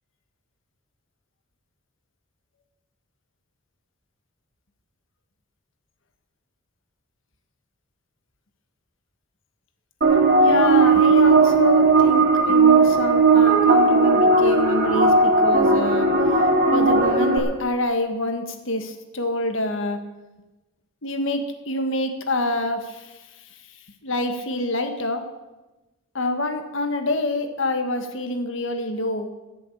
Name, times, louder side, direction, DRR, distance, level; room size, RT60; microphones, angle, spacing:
sound 1, 10.0-17.4, right 3 dB, 45° right, 2.7 m, -17 dB
voice 1, 10.4-16.1 16.7-20.0 21.0-23.2 24.0-25.2 26.1-29.3, left 2 dB, 60° left, 6 dB, 1.7 m, -26 dB
16.0 x 7.2 x 8.6 m, 1.1 s
head